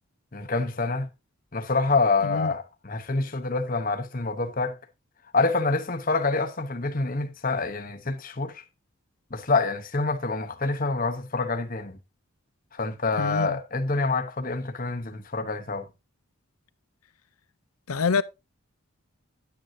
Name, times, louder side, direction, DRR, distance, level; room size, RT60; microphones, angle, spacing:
voice 1, 0.3-1.1 1.5-4.7 5.3-8.6 9.3-12.0 12.7-15.9, left 3 dB, 40° left, 1.0 m, -27 dB
voice 2, 13.2-13.6 17.9-18.2, left 4 dB, 75° left, 0.6 m, -26 dB
10.5 x 9.4 x 2.8 m
head